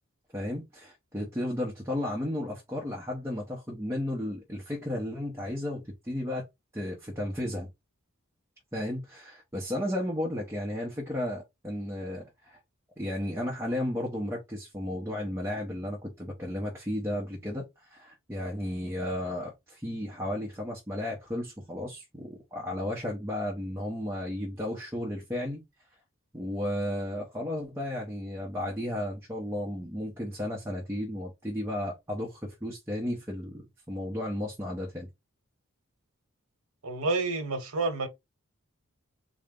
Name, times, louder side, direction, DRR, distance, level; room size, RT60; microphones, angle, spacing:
voice 1, 0.3-6.4 6.7-7.7 8.7-12.6 13.0-25.6 26.3-35.1, left 1 dB, 10° right, 0.8 m, -34 dB
voice 2, 36.8-38.1, right 3 dB, 85° right, 1.0 m, -29 dB
4.0 x 2.1 x 3.6 m
head